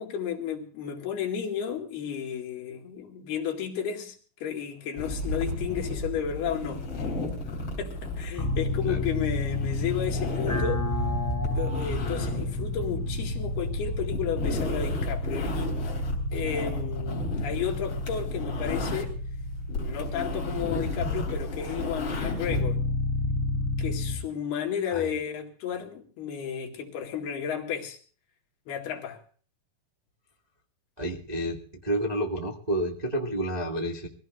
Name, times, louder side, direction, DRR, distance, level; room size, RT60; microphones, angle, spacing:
voice 1, 0.0-6.8 7.8-10.8 11.5-15.9 16.3-19.2 19.7-22.8 23.8-28.0 28.7-29.2, left 8 dB, 85° left, 4.2 m, -33 dB
sound 1, 5.0-19.3 19.6-22.6, left 2 dB, 40° left, 4.0 m, -34 dB
sound 2, 8.4-24.2, left 2 dB, 5° left, 4.1 m, -31 dB
voice 2, 31.0-34.1, right 1 dB, 70° right, 0.4 m, -30 dB
24.0 x 16.5 x 2.5 m
omnidirectional pair, 4.5 m